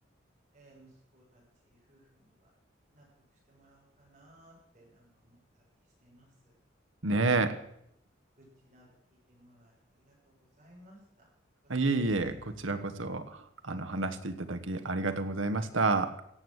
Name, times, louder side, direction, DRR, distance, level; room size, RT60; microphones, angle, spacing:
voice 1, 0.5-0.9 1.1-1.4 1.7-2.0 2.9-3.0 3.5-5.4 6.0-6.3 8.7-8.9 9.3-9.7 10.6-11.0, right 1 dB, 35° right, -4 dB, 6.8 m, -59 dB
voice 2, 7.0-7.6 11.7-13.4 13.6-16.1, right 3 dB, 90° right, 8 dB, 1.3 m, -29 dB
16.5 x 8.1 x 7.9 m, 0.75 s
head